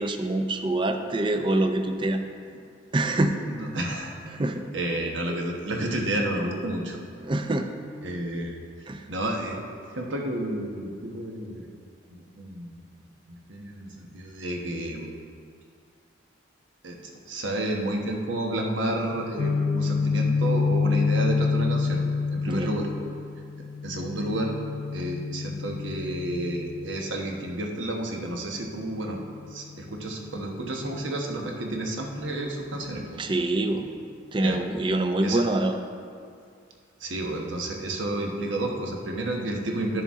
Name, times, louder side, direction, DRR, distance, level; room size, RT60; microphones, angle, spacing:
voice 1, 0.0-2.2 2.9-3.3 4.4-4.6 7.2-7.7 8.9-9.0 22.5-22.7 33.2-33.9 34.3-35.8, right 2 dB, 25° right, 6 dB, 0.5 m, -25 dB
voice 2, 3.5-4.4 4.7-7.0 8.0-8.5 8.8-9.6 9.9-11.7 12.1-12.8 13.3-15.1 16.8-17.0 17.3-22.0 22.3-22.9 23.8-24.5 24.9-29.2 29.5-33.2 34.4-34.6 35.2-35.4 37.0-40.0, right 1 dB, 75° right, 1 dB, 1.1 m, -31 dB
Guitar, 19.4-27.2, left 4 dB, 85° left, 0.4 m, -27 dB
11.0 x 6.8 x 3.7 m, 2.3 s
head